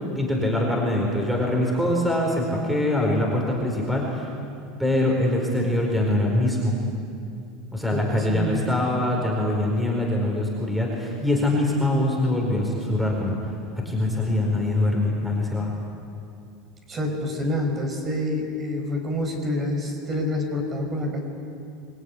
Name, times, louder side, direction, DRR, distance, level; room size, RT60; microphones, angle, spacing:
voice 1, 0.1-4.3 4.8-6.8 7.7-13.4 13.8-15.7, left 1 dB, ahead, -1 dB, 4.7 m, -23 dB
voice 2, 8.0-8.6 16.9-21.2, left 1 dB, 25° right, 3 dB, 5.5 m, -27 dB
27.0 x 21.0 x 9.9 m, 2.5 s
supercardioid pair, 140°, 0 cm